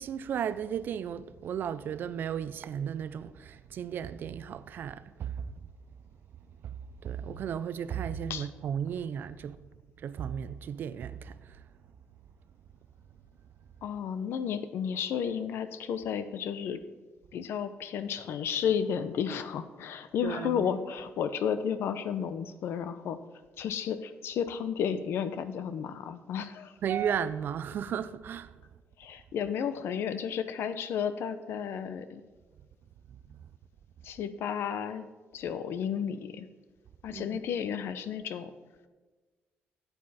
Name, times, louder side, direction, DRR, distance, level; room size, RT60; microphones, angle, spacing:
voice 1, 0.0-5.5 6.6-6.7 7.0-9.6 10.0-11.6 20.2-20.6 26.8-28.5 33.3-33.4 37.1-37.4, right 8 dB, 55° right, 0.4 m, -34 dB
voice 2, 13.8-16.8 17.3-23.2 23.6-26.7 29.0-32.2 34.0-35.1 35.3-36.5 37.0-38.5, left 8 dB, 75° left, 0.7 m, -32 dB
13.5 x 8.1 x 4.2 m
cardioid pair, 150°, 4 cm